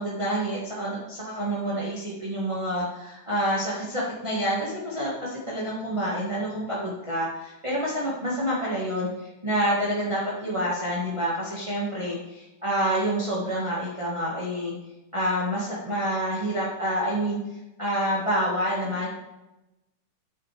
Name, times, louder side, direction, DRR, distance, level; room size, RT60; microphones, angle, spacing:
voice 1, 0.0-14.7 15.1-17.4 17.8-19.1, equal, 25° right, -6 dB, 0.6 m, -28 dB
9.7 x 7.8 x 3.4 m, 0.96 s
omnidirectional pair, 3.7 m